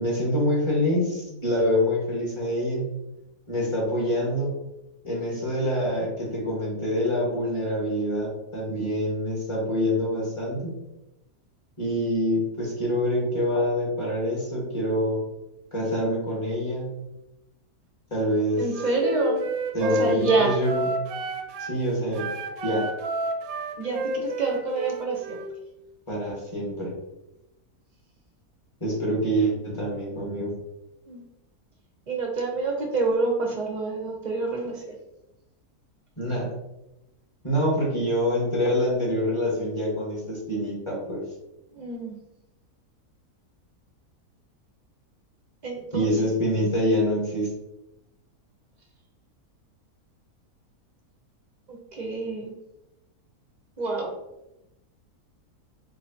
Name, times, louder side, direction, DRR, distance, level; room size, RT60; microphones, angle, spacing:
voice 1, 0.0-2.9 3.5-4.5 5.0-10.7 11.8-15.2 15.7-16.9 18.1-18.7 19.7-20.9 21.6-22.3 22.6-22.9 26.1-27.0 28.8-30.5 36.2-36.5 37.4-41.2 45.9-47.5, equal, 20° left, -5 dB, 1.3 m, -26 dB
voice 2, 18.6-19.4 19.8-20.5 23.8-25.4 31.1-31.2 32.1-34.8 41.7-42.2 45.6-46.1 51.7-52.5 53.8-54.1, right 3 dB, 45° right, 0 dB, 0.6 m, -27 dB
Wind instrument woodwind instrument, 18.7-21.8 22.1-25.5, right 1 dB, 75° right, 1.0 m, -30 dB
4.7 x 3.0 x 2.7 m, 0.90 s
omnidirectional pair, 1.6 m